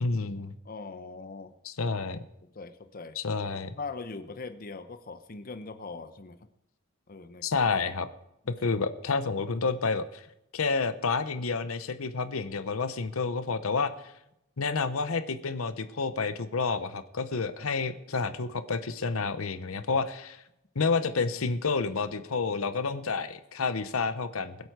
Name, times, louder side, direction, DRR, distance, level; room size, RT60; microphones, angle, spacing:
voice 1, 0.0-0.5 1.6-2.2 3.2-3.7 7.4-8.1 8.5-10.2 10.5-13.9 14.6-20.4 20.8-24.6, left 4 dB, 80° left, 11 dB, 0.8 m, -29 dB
voice 2, 0.6-1.5 2.5-3.2 3.8-6.4 7.1-7.4 17.6-17.7, left 4 dB, 45° left, 9 dB, 0.8 m, -41 dB
21.0 x 8.1 x 4.7 m, 0.84 s
head